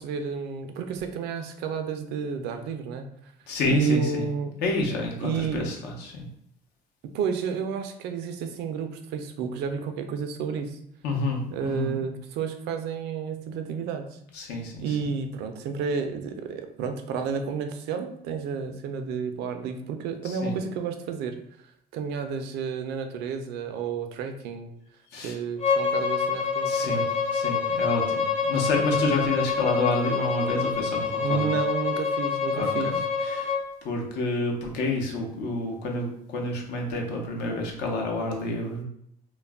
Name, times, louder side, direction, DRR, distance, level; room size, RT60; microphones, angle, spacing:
voice 1, 0.0-3.1 3.7-4.5 5.2-5.7 7.1-10.8 11.5-14.2 14.8-21.4 21.9-24.7 25.2-27.1 31.2-33.0, right 6 dB, 80° right, 7 dB, 0.4 m, -31 dB
voice 2, 3.5-4.3 4.6-6.2 11.0-12.0 14.3-15.0 20.3-20.5 25.1-25.3 26.7-31.5 32.5-33.0 33.2-33.5 33.8-38.8, left 2 dB, 80° left, 1 dB, 0.7 m, -29 dB
Bowed string instrument, 25.6-33.6, left 5 dB, 35° left, 0.6 m, -26 dB
2.3 x 2.1 x 3.4 m, 0.73 s
cardioid pair, 110°, 17 cm